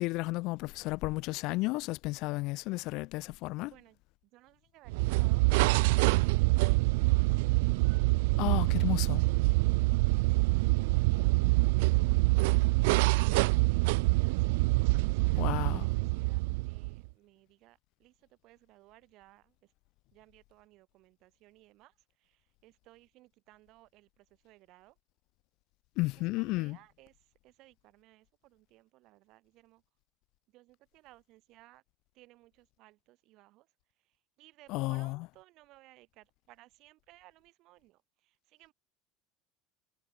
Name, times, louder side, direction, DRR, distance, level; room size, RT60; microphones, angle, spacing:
voice 1, 0.0-3.7 8.4-9.2 15.4-15.9 26.0-26.8 34.7-35.2, left 22 dB, 45° left, 0.4 m, -33 dB
voice 2, 3.6-9.8 14.1-19.7 20.1-25.0 26.1-29.8 30.5-31.8 32.1-38.7, right 18 dB, 40° right, 6.7 m, -61 dB
sound 1, 4.9-17.1, right 25 dB, 70° right, 0.4 m, -26 dB
cardioid pair, 175°, 0 cm